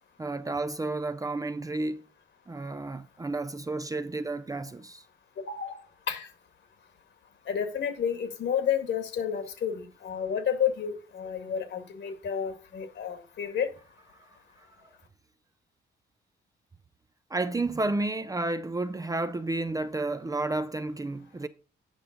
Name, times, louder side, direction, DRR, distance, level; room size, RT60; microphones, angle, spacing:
voice 1, 0.2-2.0 2.5-5.1 14.6-14.9 17.3-21.5, right 2 dB, 15° right, 0.6 m, -31 dB
voice 2, 5.5-6.3 7.5-13.7, left 8 dB, 65° left, 2.1 m, -31 dB
8.9 x 5.5 x 5.2 m
cardioid pair, 90°, 20 cm